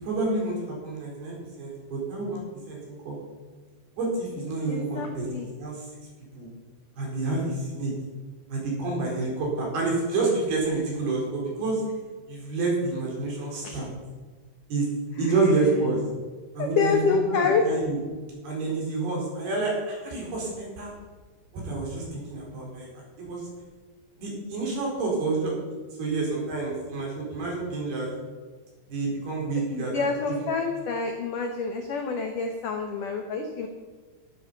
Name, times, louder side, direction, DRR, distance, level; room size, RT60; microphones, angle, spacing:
voice 1, 0.0-3.2 4.0-5.9 6.4-6.5 7.0-7.9 8.5-11.8 12.3-13.9 14.7-14.9 15.2-16.0 16.5-17.0 17.3-18.0 18.4-20.9 21.5-22.9 23.2-23.5 24.2-25.5 26.0-28.1 28.9-30.1 30.4-30.5, right 3 dB, 55° right, -3 dB, 6.2 m, -28 dB
voice 2, 4.7-5.5 13.6-13.8 16.6-17.7 29.7-33.7, left 5 dB, 80° left, 3 dB, 1.8 m, -27 dB
13.0 x 11.5 x 6.8 m, 1.4 s
omnidirectional pair, 5.7 m